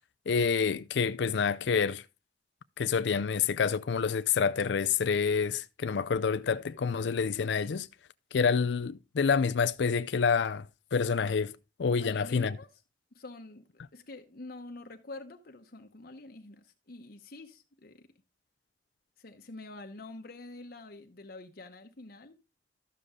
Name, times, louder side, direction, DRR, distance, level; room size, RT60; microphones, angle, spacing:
voice 1, 0.3-2.0 2.8-7.9 8.3-10.7 10.9-12.6, left 6 dB, 80° left, 0.4 m, -28 dB
voice 2, 12.0-12.7 13.1-13.6 13.9-18.1 19.2-22.4, left 2 dB, 60° left, 0.9 m, -46 dB
13.0 x 6.7 x 3.7 m
head